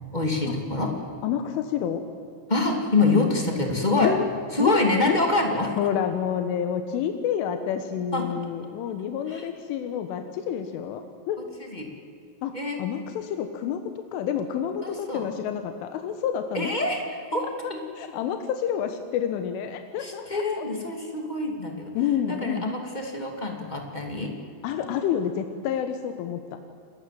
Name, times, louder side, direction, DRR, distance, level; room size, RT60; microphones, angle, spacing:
voice 1, 0.1-0.9 2.5-4.2 4.5-5.9 8.1-8.3 9.3-9.5 11.6-11.9 12.5-12.8 14.8-15.3 16.5-17.8 20.0-21.9 22.3-24.3, left 2 dB, 30° left, 2 dB, 0.8 m, -26 dB
voice 2, 1.2-2.0 4.0-4.3 4.6-4.8 5.1-5.2 5.8-11.4 12.4-16.7 17.6-20.7 22.0-22.7 24.6-26.6, left 9 dB, 80° left, 7 dB, 3.6 m, -28 dB
29.0 x 22.0 x 7.7 m, 2.5 s
omnidirectional pair, 5.7 m